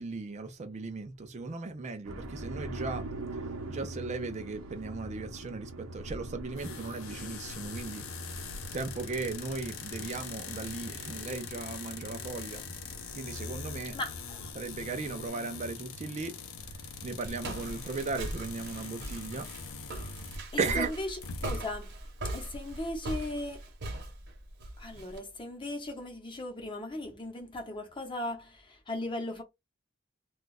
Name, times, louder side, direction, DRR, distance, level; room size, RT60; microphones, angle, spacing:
voice 1, 0.0-3.0 3.7-8.1 8.7-12.6 13.1-14.0 14.5-16.3 16.6-19.5 20.6-20.9, right 4 dB, 35° right, 0.4 m, -37 dB
sound 1, 2.0-15.3, right 2 dB, 80° right, 0.7 m, -44 dB
sound 2, 6.6-20.5 20.9-21.0 21.2-21.6, left 5 dB, 80° left, 0.6 m, -43 dB
voice 2, 13.9-14.5 20.8-21.9 22.3-23.6 24.8-29.4, left 1 dB, 25° left, 0.8 m, -37 dB
Walk footsteps, 16.6-25.2, right 1 dB, 55° right, 0.9 m, -40 dB
2.3 x 2.3 x 3.9 m
head